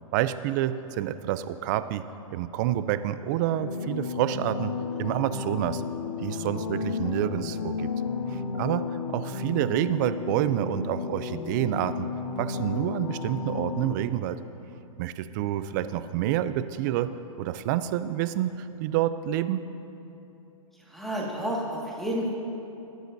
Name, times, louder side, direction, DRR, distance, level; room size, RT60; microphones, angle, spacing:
voice 1, 0.1-2.0 2.3-4.7 5.0-5.8 6.2-7.9 8.3-8.8 9.1-12.1 12.4-14.4 15.0-17.1 17.4-19.6, right 12 dB, 35° right, 13 dB, 0.4 m, -28 dB
sound 1, 3.5-13.9, left 5 dB, 85° left, 1.2 m, -33 dB
voice 2, 20.8-22.3, equal, ahead, -4 dB, 1.8 m, -31 dB
20.0 x 9.7 x 2.6 m, 2.9 s
hypercardioid pair, 145°, 18 cm